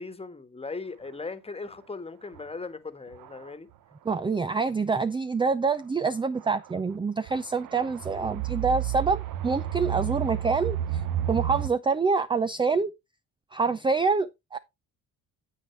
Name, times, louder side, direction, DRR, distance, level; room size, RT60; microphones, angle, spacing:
voice 1, 0.0-3.7, left 3 dB, 15° left, 1.4 m, -38 dB
sound 1, 2.4-2.5 3.1-3.5 4.5-4.6 6.4-6.7 7.3-11.7, right 11 dB, 70° right, 0.8 m, -31 dB
voice 2, 4.1-10.8 11.3-12.9 13.5-14.6, right 4 dB, 15° right, 0.5 m, -26 dB
9.1 x 8.2 x 3.2 m
supercardioid pair, 75°, 33 cm